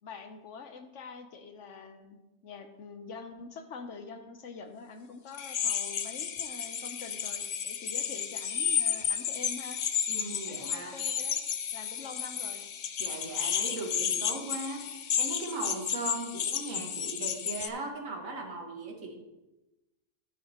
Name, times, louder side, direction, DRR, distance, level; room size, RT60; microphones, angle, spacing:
voice 1, 0.0-2.2 2.4-9.8 10.5-11.4 11.7-12.6, left 5 dB, 65° left, 7 dB, 1.1 m, -45 dB
sound 1, 5.3-17.7, left 8 dB, 80° left, 0.4 m, -32 dB
voice 2, 10.1-10.9 13.0-19.2, right 2 dB, 70° right, 1 dB, 1.8 m, -38 dB
12.0 x 9.4 x 2.9 m, 1.0 s
omnidirectional pair, 1.4 m